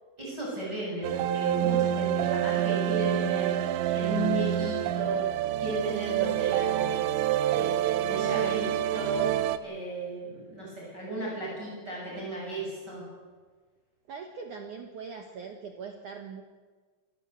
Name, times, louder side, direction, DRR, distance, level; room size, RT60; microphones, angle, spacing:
voice 1, 0.2-3.6 3.9-5.2 5.6-7.0 7.5-13.0, right 1 dB, 20° right, -4 dB, 7.4 m, -35 dB
sound 1, 1.0-9.6, right 11 dB, 90° right, 3.4 m, -27 dB
voice 2, 14.1-16.4, right 5 dB, 75° right, 4 dB, 1.8 m, -41 dB
26.0 x 14.5 x 8.0 m, 1.4 s
omnidirectional pair, 5.6 m